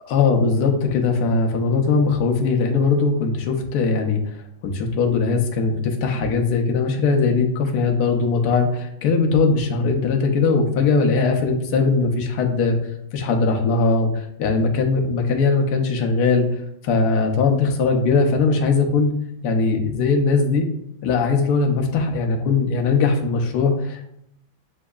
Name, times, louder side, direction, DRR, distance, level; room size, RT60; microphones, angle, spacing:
voice 1, 0.1-4.2 4.6-12.8 13.1-19.1 19.4-20.7 21.0-24.1, left 4 dB, 65° left, 3 dB, 1.1 m, -20 dB
7.1 x 2.7 x 2.3 m, 0.75 s
omnidirectional pair, 2.1 m